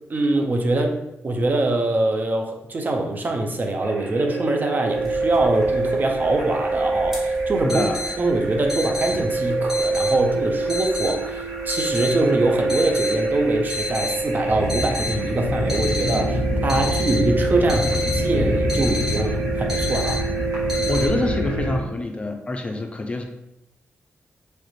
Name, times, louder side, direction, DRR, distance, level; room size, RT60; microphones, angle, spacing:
voice 1, 0.1-1.0 1.2-7.8 8.2-20.2, right 2 dB, 40° right, 3 dB, 0.5 m, -23 dB
sound 1, 3.8-21.8, right 3 dB, 75° right, 1.2 m, -26 dB
sound 2, 4.9-21.1, left 2 dB, 10° right, 1.5 m, -33 dB
voice 2, 7.6-8.0 20.8-23.2, left 2 dB, 25° left, 4 dB, 0.4 m, -26 dB
sound 3, 14.5-21.8, left 1 dB, 85° left, 0.4 m, -27 dB
3.1 x 2.4 x 3.1 m, 0.86 s
cardioid pair, 80°, 5 cm